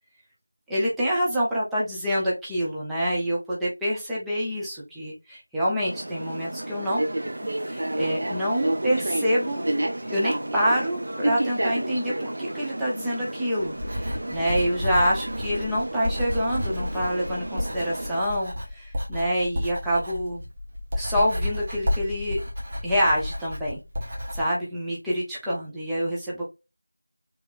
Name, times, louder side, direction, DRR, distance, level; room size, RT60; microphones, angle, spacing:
voice 1, 0.7-7.0 7.4-9.6 10.1-20.4 21.0-22.4 22.8-23.8 24.3-26.4, equal, ahead, -9 dB, 0.6 m, -27 dB
sound 1, 5.9-18.2, right 1 dB, 40° right, 0.8 m, -31 dB
Writing, 13.7-24.5, left 1 dB, 20° right, 1.1 m, -31 dB
4.5 x 3.4 x 2.4 m, 0.25 s
figure-of-eight pair, 170°, 0 cm